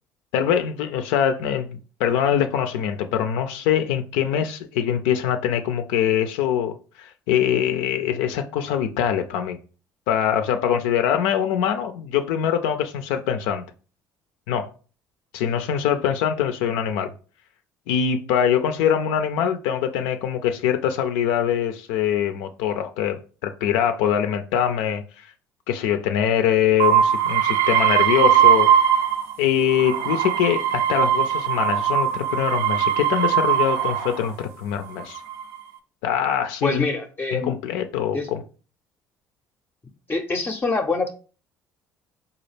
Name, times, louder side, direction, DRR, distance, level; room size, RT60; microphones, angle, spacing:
voice 1, 0.3-9.6 10.1-13.6 14.5-14.7 15.3-17.1 17.9-25.3 25.7-28.7 29.4-35.2 36.0-36.9 37.3-38.4, left 9 dB, 80° left, 0.4 m, -23 dB
sound 1, 26.8-29.3 29.7-34.2 35.0-35.6, right 9 dB, 75° right, 0.6 m, -20 dB
voice 2, 36.6-37.5 38.1-38.3 40.1-41.1, left 3 dB, 25° left, 0.5 m, -25 dB
4.0 x 2.3 x 3.2 m
hypercardioid pair, 65°, 9 cm